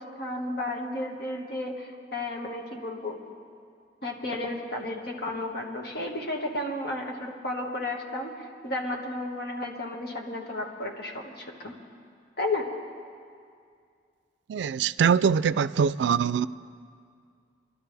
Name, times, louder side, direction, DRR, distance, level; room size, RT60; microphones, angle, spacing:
voice 1, 0.0-3.2 4.0-11.7 12.4-12.7, left 1 dB, 65° left, 1.6 m, -33 dB
voice 2, 14.5-16.5, right 7 dB, 75° right, 0.3 m, -23 dB
27.5 x 12.0 x 3.4 m
head